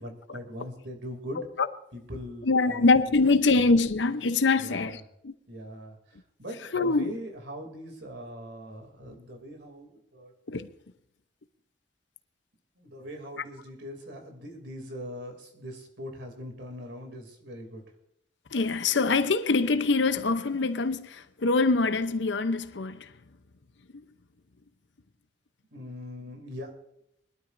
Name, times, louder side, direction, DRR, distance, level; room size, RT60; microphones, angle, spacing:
voice 1, 0.0-1.4 1.9-3.2 4.5-5.0 5.5-6.0 6.4-10.3 12.8-17.8 25.7-26.7, equal, 80° right, 2.9 m, -41 dB
voice 2, 2.4-5.3 6.7-7.1 10.5-10.7 18.5-23.0, left 3 dB, 85° left, 0.8 m, -24 dB
21.5 x 12.5 x 2.6 m
head